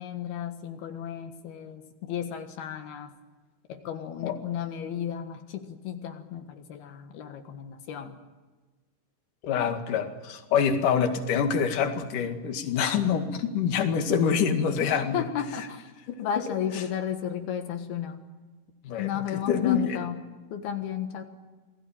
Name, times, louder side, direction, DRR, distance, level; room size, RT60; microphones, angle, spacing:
voice 1, 0.0-3.2 3.7-8.2 14.8-15.9 16.2-18.3 19.0-20.2 20.5-21.2, left 9 dB, 80° left, 6 dB, 3.5 m, -34 dB
voice 2, 9.4-15.2 16.1-16.2 18.8-20.0, left 7 dB, 60° left, 6 dB, 3.4 m, -26 dB
28.5 x 20.5 x 8.9 m, 1.3 s
omnidirectional pair, 4.4 m